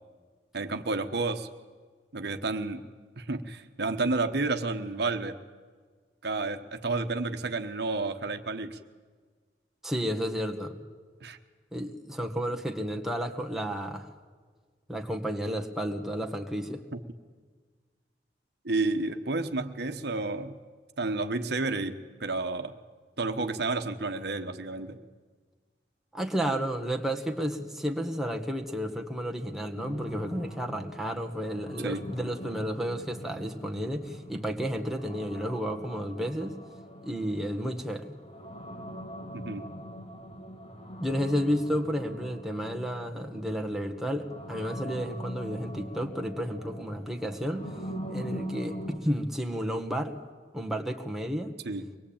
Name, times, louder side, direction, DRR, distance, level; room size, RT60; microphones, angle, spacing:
voice 1, 0.5-1.5 2.1-2.9 3.2-5.4 6.2-8.8 11.2-11.4 16.9-17.0 18.6-20.6 21.0-22.7 23.2-25.0 31.8-32.1 39.3-39.6 51.6-51.9, right 3 dB, 65° right, 7 dB, 1.2 m, -31 dB
voice 2, 9.8-10.7 11.7-14.1 14.9-16.8 26.1-36.6 37.0-38.1 41.0-47.7 48.1-50.2 50.5-51.5, equal, ahead, 3 dB, 1.7 m, -32 dB
sound 1, 29.8-49.0, equal, 35° left, 3.6 m, -43 dB
24.0 x 20.5 x 8.8 m, 1.5 s
head